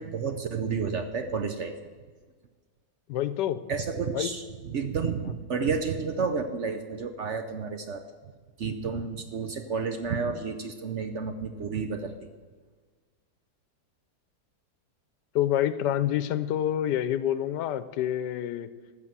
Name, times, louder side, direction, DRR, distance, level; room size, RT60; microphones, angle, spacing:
voice 1, 0.0-1.7 3.7-8.0 8.6-12.3, right 5 dB, 60° right, 7 dB, 0.8 m, -31 dB
voice 2, 3.1-3.6 4.1-4.3 15.3-18.7, left 11 dB, 85° left, 14 dB, 1.3 m, -27 dB
13.5 x 7.1 x 7.3 m, 1.5 s
omnidirectional pair, 1.8 m